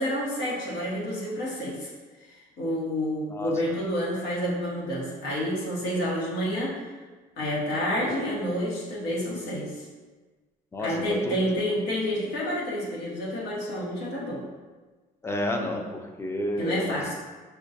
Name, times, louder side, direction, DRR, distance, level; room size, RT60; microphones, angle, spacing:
voice 1, 0.0-1.9 2.3-6.8 7.4-9.8 10.8-14.4 16.6-17.1, equal, 75° left, -6 dB, 1.3 m, -29 dB
voice 2, 15.2-17.0, left 1 dB, 15° left, 2 dB, 0.5 m, -30 dB
6.1 x 2.3 x 2.6 m, 1.3 s
cardioid pair, 110°, 17 cm